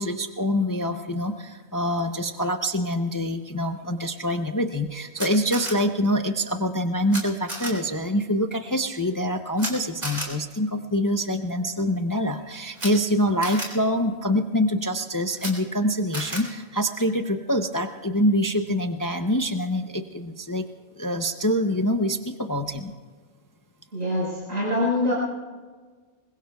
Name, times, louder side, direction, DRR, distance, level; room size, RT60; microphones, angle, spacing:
voice 1, 0.0-20.7 21.0-22.9, equal, 25° left, 6 dB, 0.4 m, -25 dB
Camera, 5.2-5.7 7.1-7.2 7.5-7.7 9.6-9.7 10.0-10.3 12.7-12.9 13.4-13.7 15.3-15.5 16.1-16.4, right 1 dB, 40° right, 3.3 m, -31 dB
voice 2, 23.9-25.1, left 1 dB, 70° right, -6 dB, 5.1 m, -24 dB
25.5 x 21.5 x 2.3 m, 1.4 s
omnidirectional pair, 1.4 m